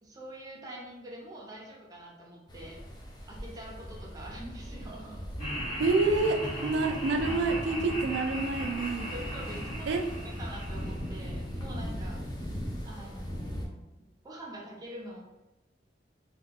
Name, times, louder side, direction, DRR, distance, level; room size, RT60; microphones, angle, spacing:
voice 1, 0.0-2.8 3.3-5.2 9.0-12.2 12.8-13.8 14.2-15.2, right 1 dB, 20° right, -2 dB, 0.7 m, -45 dB
sound 1, 2.5-13.7, equal, 25° left, 0.6 m, -39 dB
Laughter, 5.4-11.6, equal, 45° left, 1.5 m, -38 dB
voice 2, 5.8-9.1 9.9-10.1, right 3 dB, 80° right, 3 dB, 0.3 m, -28 dB
2.7 x 2.3 x 3.6 m, 1.0 s
head